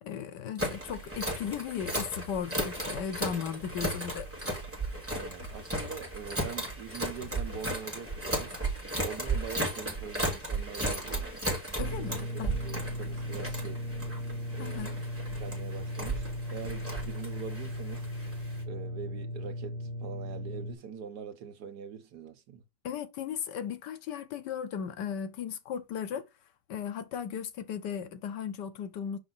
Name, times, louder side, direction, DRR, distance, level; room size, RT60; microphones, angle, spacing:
voice 1, 0.0-4.3 11.8-12.6 14.6-14.9 22.8-26.3 26.7-29.2, left 8 dB, 80° left, 1.5 m, -36 dB
sound 1, 0.6-18.6, right 1 dB, 5° right, 3.5 m, -35 dB
sound 2, 1.8-3.0 3.6-4.8 5.4-6.5 7.2-8.3, left 7 dB, 60° left, 2.4 m, -50 dB
voice 2, 5.1-8.5 9.0-11.4 12.0-12.3 12.6-13.8 14.6-15.0 15.4-18.1 18.7-22.6, right 7 dB, 70° right, 1.6 m, -43 dB
sound 3, 11.8-20.7, left 1 dB, 50° right, 1.4 m, -37 dB
6.1 x 5.4 x 4.0 m
omnidirectional pair, 1.9 m